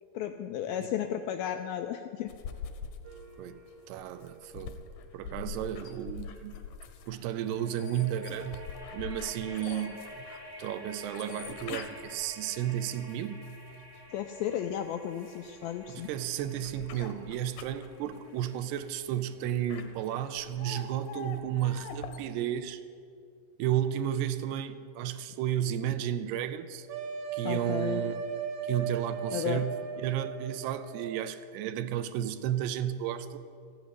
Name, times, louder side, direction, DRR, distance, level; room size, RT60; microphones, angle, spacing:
voice 1, 0.1-2.3 14.1-16.1 27.4-28.0 29.3-29.7, left 10 dB, 90° left, 6 dB, 2.1 m, -34 dB
sound 1, 2.3-14.0 14.5-22.2, left 6 dB, 70° left, 2.1 m, -44 dB
sound 2, 3.0-6.3 7.1-22.0, equal, 45° right, 0.9 m, -51 dB
voice 2, 3.9-4.8 5.1-6.6 7.1-10.3 10.6-13.4 15.9-22.8 23.6-26.9 27.3-28.2 28.6-33.4, right 11 dB, 80° right, 11 dB, 2.6 m, -33 dB
sound 3, 26.9-31.3, right 6 dB, 65° right, 1.6 m, -36 dB
14.5 x 8.9 x 9.7 m, 2.3 s
omnidirectional pair, 4.9 m